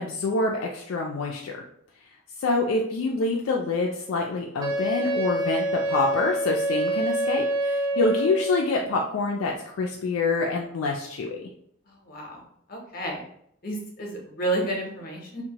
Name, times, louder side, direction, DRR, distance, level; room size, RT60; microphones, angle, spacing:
voice 1, 0.0-1.5 2.4-11.4, left 3 dB, 70° left, 0 dB, 0.3 m, -26 dB
Wind instrument woodwind instrument, 4.6-8.7, right 1 dB, 20° right, 0.4 m, -26 dB
voice 2, 11.9-12.4 12.7-13.2 13.6-15.4, right 1 dB, 45° left, 0 dB, 0.7 m, -31 dB
2.7 x 2.1 x 2.8 m, 0.68 s
head